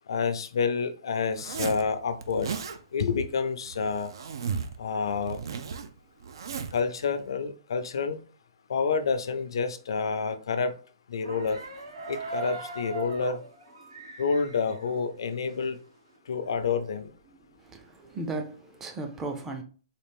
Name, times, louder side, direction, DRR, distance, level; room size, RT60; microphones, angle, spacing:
voice 1, 0.1-2.5 2.9-4.1 4.8-5.4 6.7-8.2 8.7-10.7 11.1-11.6 12.1-13.4 14.2-15.8 16.3-17.1, left 5 dB, 80° left, 0.5 m, -28 dB
Zipper (clothing), 1.3-1.8 2.2-2.8 3.6-4.8 5.0-6.8, right 6 dB, 70° right, 0.5 m, -35 dB
sound 1, 11.2-15.8 16.1-16.2 16.4-18.3, right 3 dB, 85° right, 1.9 m, -41 dB
voice 2, 17.6-19.6, right 2 dB, 10° right, 0.5 m, -36 dB
4.1 x 2.5 x 3.4 m
hypercardioid pair, 160°, 2 cm